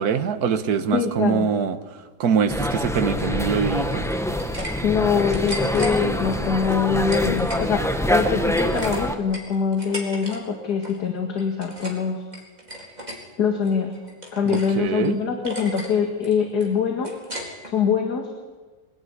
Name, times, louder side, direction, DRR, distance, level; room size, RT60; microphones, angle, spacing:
voice 1, 0.0-1.8 2.2-4.1 14.5-15.2, right 6 dB, 55° right, 9 dB, 1.7 m, -23 dB
voice 2, 0.9-1.5 4.8-12.2 13.4-13.9 14.3-17.1 17.7-18.3, left 6 dB, 60° left, 4 dB, 2.5 m, -23 dB
sound 1, 2.5-9.2, equal, ahead, 0.9 m, -25 dB
sound 2, 3.9-4.7 5.0-5.9 6.6-7.6 8.0-10.4 10.6-11.0 11.3-12.0 12.3-13.2 13.6-14.7 15.0-15.1 15.4-15.9 16.2-17.7, equal, 20° right, 4.3 m, -36 dB
23.0 x 18.0 x 9.7 m, 1.3 s
omnidirectional pair, 2.0 m